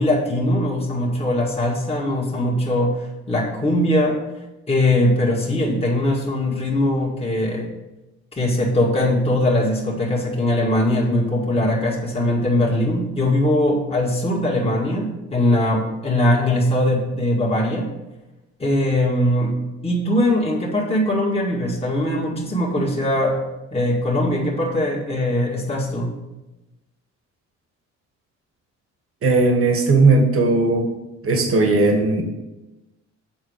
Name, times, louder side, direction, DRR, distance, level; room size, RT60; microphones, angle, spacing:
voice 1, 0.0-3.0 3.3-4.2 4.7-7.7 8.4-17.9 18.6-19.6 19.8-23.4 23.7-26.2, left 1 dB, 20° left, -3 dB, 2.0 m, -21 dB
voice 2, 29.2-30.9 31.2-32.2, right 3 dB, 45° right, 4 dB, 1.6 m, -17 dB
7.3 x 4.4 x 6.6 m, 1.0 s
cardioid pair, 90°, 30 cm